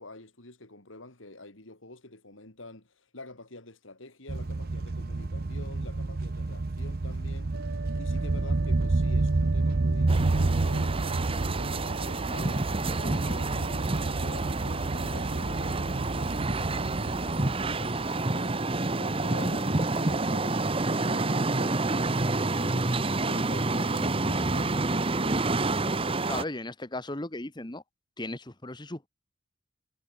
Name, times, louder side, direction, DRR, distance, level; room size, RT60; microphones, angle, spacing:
voice 1, 0.0-7.5 8.0-12.7 13.0-18.7 19.0-25.5, left 2 dB, 85° left, 4.2 m, -47 dB
sound 1, 4.3-18.1, right 2 dB, 50° right, 0.7 m, -29 dB
sound 2, 7.5-17.2, right 3 dB, 75° right, 1.9 m, -44 dB
sound 3, 10.1-26.4, right 2 dB, 30° right, 1.1 m, -29 dB
voice 2, 26.3-27.8 28.2-29.1, left 2 dB, 20° left, 1.5 m, -36 dB
head